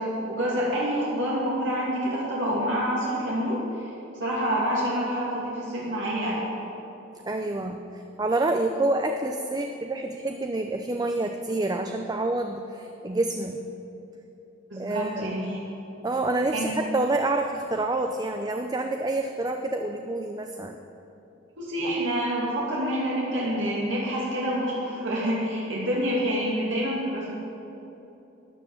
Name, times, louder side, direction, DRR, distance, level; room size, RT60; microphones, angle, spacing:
voice 1, 0.0-3.9 4.2-6.6 14.7-15.6 16.5-16.7 21.6-27.4, equal, 80° right, -5 dB, 2.5 m, -27 dB
voice 2, 7.3-13.6 14.7-15.4 16.0-20.8, right 2 dB, 20° right, 5 dB, 0.5 m, -28 dB
13.0 x 10.0 x 7.2 m, 2.9 s
head